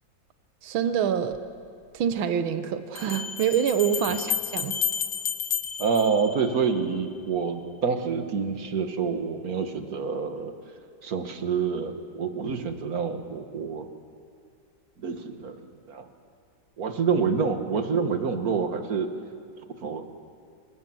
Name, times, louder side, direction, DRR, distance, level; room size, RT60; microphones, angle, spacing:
voice 1, 0.6-1.4 1.9-4.8, right 8 dB, 85° right, 10 dB, 1.8 m, -26 dB
sound 1, 1.3-1.4 3.0-6.9, left 8 dB, 65° left, 1.9 m, -31 dB
voice 2, 5.8-10.5 11.0-13.9 15.0-16.1 16.8-19.1 19.8-20.1, right 5 dB, 50° right, 7 dB, 1.9 m, -27 dB
26.5 x 19.5 x 7.7 m, 2.3 s
omnidirectional pair, 2.2 m